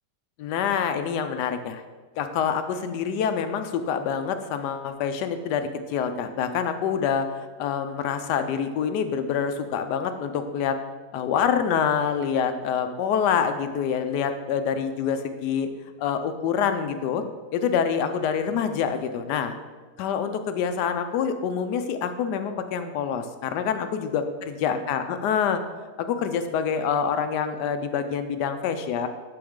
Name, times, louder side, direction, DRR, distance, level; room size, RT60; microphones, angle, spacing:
voice 1, 0.4-1.8 2.2-10.8 11.1-15.7 16.0-17.2 17.5-19.5 20.0-25.6 26.0-29.1, left 7 dB, 90° left, 9 dB, 1.2 m, -26 dB
11.0 x 3.9 x 3.6 m, 1.4 s
omnidirectional pair, 1.7 m